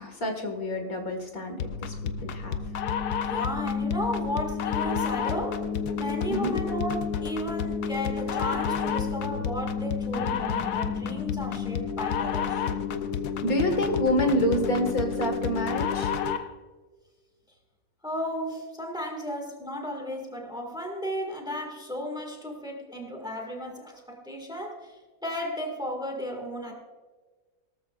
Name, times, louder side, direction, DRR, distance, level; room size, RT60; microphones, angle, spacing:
voice 1, 0.0-2.6 6.3-6.6 13.4-16.1, equal, 70° left, 4 dB, 2.2 m, -28 dB
sound 1, 1.6-16.5, left 7 dB, 85° left, 1.3 m, -30 dB
voice 2, 3.2-5.6 6.0-12.6 18.0-26.7, equal, 5° right, 2 dB, 1.8 m, -34 dB
18.0 x 13.5 x 2.4 m, 1.3 s
omnidirectional pair, 1.6 m